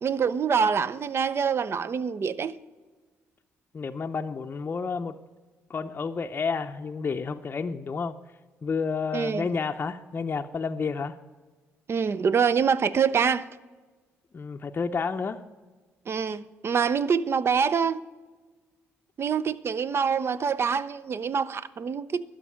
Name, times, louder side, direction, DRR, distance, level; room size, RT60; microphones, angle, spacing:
voice 1, 0.0-2.5 9.1-9.4 11.9-13.5 16.1-18.0 19.2-22.2, right 6 dB, 45° right, 0.6 m, -25 dB
voice 2, 3.7-5.1 5.7-8.2 8.6-11.2 14.3-15.4, left 5 dB, 35° left, 0.6 m, -30 dB
12.0 x 5.2 x 8.7 m
supercardioid pair, 65°, 6 cm